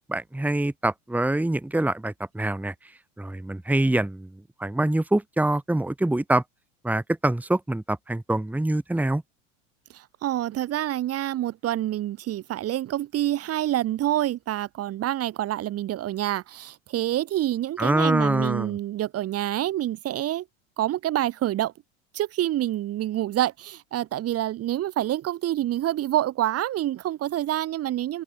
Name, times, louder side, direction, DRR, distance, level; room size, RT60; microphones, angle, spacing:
voice 1, 0.1-2.7 3.2-4.3 4.6-6.4 6.8-9.2 17.8-18.8, right 1 dB, 5° right, 2.0 m, -25 dB
voice 2, 9.9-20.5 20.8-21.7 22.1-28.2, right 13 dB, 40° right, 2.4 m, -27 dB
open air
figure-of-eight pair, 80°, 38 cm